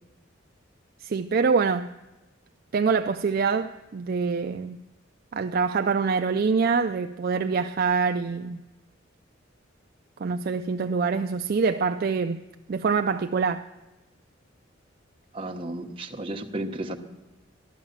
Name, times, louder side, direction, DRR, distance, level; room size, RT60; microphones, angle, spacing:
voice 1, 1.0-1.9 2.7-4.8 5.3-8.6 10.2-12.4 12.7-13.7, right 5 dB, 50° right, 0.4 m, -25 dB
voice 2, 15.3-17.0, right 1 dB, 25° right, 1.1 m, -33 dB
14.5 x 11.5 x 7.3 m
head